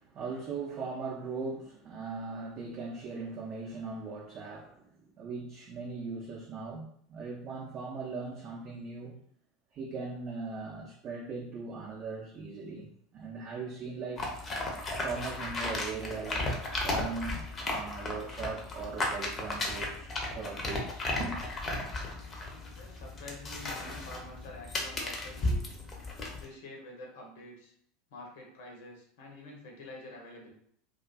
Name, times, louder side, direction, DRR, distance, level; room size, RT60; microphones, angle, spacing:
voice 1, 0.0-9.2 9.7-14.3 15.0-16.6 16.8-21.4, right 4 dB, 45° right, -3 dB, 0.4 m, -39 dB
sound 1, 14.2-26.4, left 2 dB, 30° left, 0.6 m, -35 dB
voice 2, 22.7-25.8 26.4-27.7 28.1-30.5, left 2 dB, 65° left, -1 dB, 0.8 m, -47 dB
2.4 x 2.4 x 2.2 m, 0.67 s
figure-of-eight pair, 75°, 0 cm